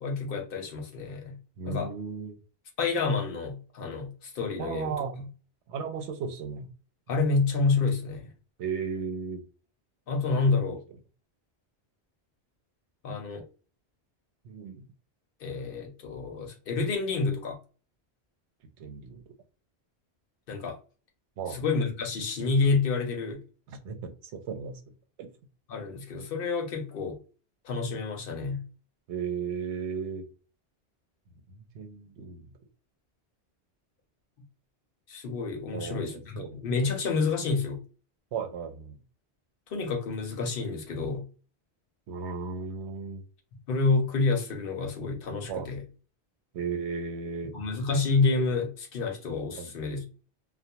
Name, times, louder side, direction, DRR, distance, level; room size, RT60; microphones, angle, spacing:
voice 1, 0.0-1.4 1.7-1.9 2.8-5.2 7.1-8.3 10.1-10.8 13.0-13.4 15.4-17.6 20.5-20.8 21.5-23.4 25.7-27.2 27.6-28.6 35.1-37.8 39.7-41.2 43.7-45.8 47.5-50.0, left 4 dB, 60° left, 0.7 m, -28 dB
voice 2, 1.6-2.4 4.6-5.2 5.7-6.7 8.6-9.4 14.4-14.8 18.8-19.2 21.4-21.6 23.8-24.8 25.2-25.3 29.1-30.2 31.7-32.5 35.7-36.7 38.3-39.0 42.1-43.2 45.5-45.7 46.5-47.5 49.6-49.7, right 6 dB, 90° right, 0.9 m, -35 dB
2.2 x 2.1 x 2.7 m
omnidirectional pair, 1.1 m